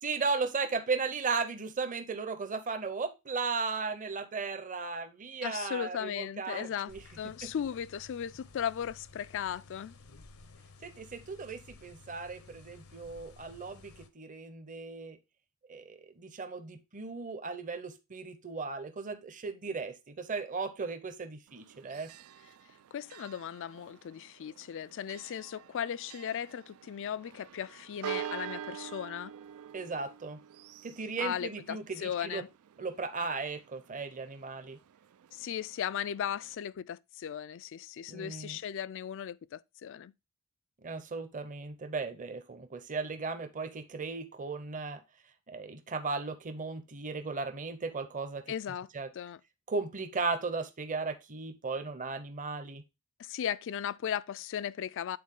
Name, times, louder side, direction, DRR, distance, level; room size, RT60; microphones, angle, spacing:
voice 1, 0.0-7.0 7.4-7.5 10.8-15.2 15.7-22.1 29.7-30.4 30.8-32.4 32.8-34.8 38.1-38.6 40.8-45.0 45.5-48.4 48.9-49.1 49.7-52.8, right 4 dB, 35° right, 0.8 m, -36 dB
voice 2, 5.4-6.9 7.2-9.9 22.9-29.3 31.2-32.5 35.3-40.1 48.5-48.9 49.1-49.4 53.2-55.2, left 9 dB, 60° left, 0.3 m, -37 dB
sound 1, 6.9-14.1, left 3 dB, 80° left, 0.9 m, -55 dB
Church bell, 21.5-36.5, right 9 dB, 85° right, 0.4 m, -47 dB
8.7 x 4.0 x 3.6 m
head